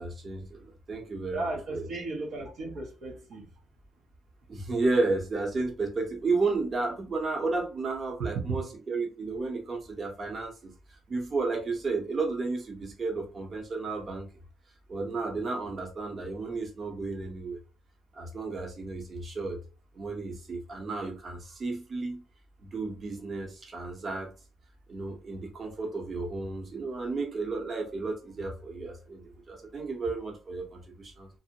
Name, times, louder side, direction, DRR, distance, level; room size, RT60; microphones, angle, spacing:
voice 1, 0.0-2.1 4.5-14.3 14.9-17.6 18.1-19.6 19.9-22.2 22.6-24.3 24.9-31.3, right 3 dB, 40° right, 0.8 m, -33 dB
voice 2, 1.3-3.5 8.2-8.6, right 3 dB, 75° right, 0.7 m, -35 dB
2.5 x 2.0 x 2.8 m
cardioid pair, 90°, 0 cm